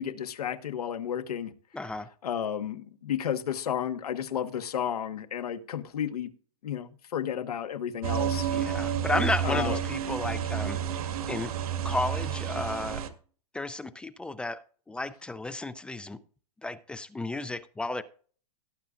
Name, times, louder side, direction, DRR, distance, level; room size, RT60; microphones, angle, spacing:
voice 1, 0.0-1.5 2.2-6.3 6.6-8.5 9.4-9.8, left 9 dB, 85° left, 1.4 m, -32 dB
voice 2, 1.7-2.1 8.5-11.0 11.3-11.5 11.8-13.0 13.5-14.6 14.9-16.2 16.6-18.0, left 2 dB, 5° left, 0.4 m, -33 dB
sound 1, 8.0-13.1, right 9 dB, 70° right, 1.8 m, -30 dB
17.5 x 8.3 x 2.6 m
hypercardioid pair, 145°, 19 cm